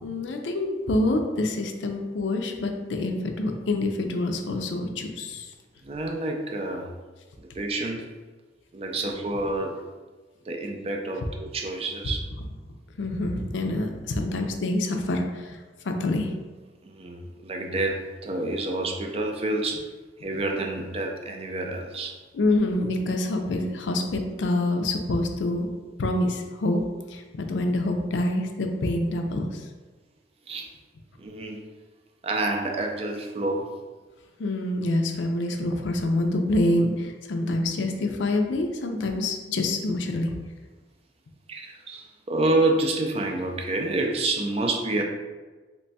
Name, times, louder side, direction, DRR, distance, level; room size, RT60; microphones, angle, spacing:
voice 1, 0.0-5.5 13.0-15.6 15.8-16.3 22.3-25.7 26.0-26.8 27.1-29.7 34.4-40.3, left 2 dB, 85° left, 4 dB, 0.4 m, -26 dB
voice 2, 5.8-6.9 7.6-8.2 8.7-9.8 10.5-12.2 16.8-19.9 20.2-22.1 30.5-30.7 31.2-31.6 32.2-33.7 41.5-45.0, right 2 dB, 35° right, 2 dB, 0.4 m, -28 dB
3.0 x 2.2 x 4.0 m, 1.3 s
head